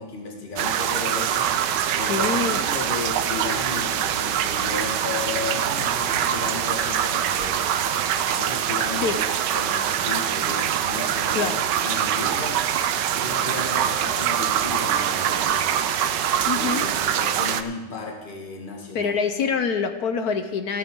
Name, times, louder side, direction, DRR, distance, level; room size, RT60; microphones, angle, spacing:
voice 1, 0.0-7.8 8.4-9.2 9.5-11.5 11.8-12.6 13.1-15.7 16.5-19.1, left 3 dB, 25° left, 0 dB, 1.9 m, -34 dB
sound 1, 0.6-17.6, right 9 dB, 70° right, 1.2 m, -24 dB
voice 2, 2.1-2.6 9.0-9.2 11.3-11.7 16.4-16.9 18.9-20.8, left 6 dB, 60° left, 8 dB, 1.1 m, -25 dB
sound 2, 13.6-16.7, right 13 dB, 85° right, 1.5 m, -36 dB
15.0 x 12.0 x 3.8 m, 1.1 s
omnidirectional pair, 2.2 m